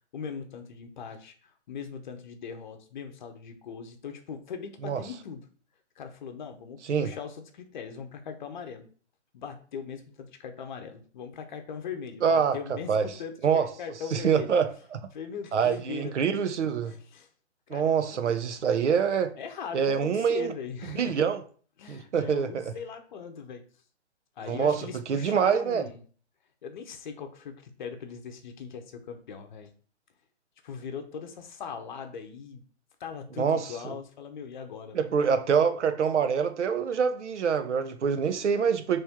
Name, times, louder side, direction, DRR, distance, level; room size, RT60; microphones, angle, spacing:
voice 1, 0.1-5.5 6.0-8.9 9.3-14.5 15.1-16.1 16.9-17.3 17.7-18.4 19.4-21.2 21.8-23.6 24.4-26.0 26.6-29.7 30.6-32.6 33.0-35.1, left 6 dB, 40° left, 0.8 m, -40 dB
voice 2, 12.2-12.6 12.9-13.1 13.4-13.7 14.1-15.0 15.5-16.9 17.7-19.3 19.7-20.5 20.9-21.4 21.9-22.7 24.5-24.8 25.1-25.8 33.4-33.9 34.9-39.0, right 7 dB, 80° right, 0.8 m, -25 dB
4.2 x 3.4 x 3.5 m
hypercardioid pair, 150°, 35 cm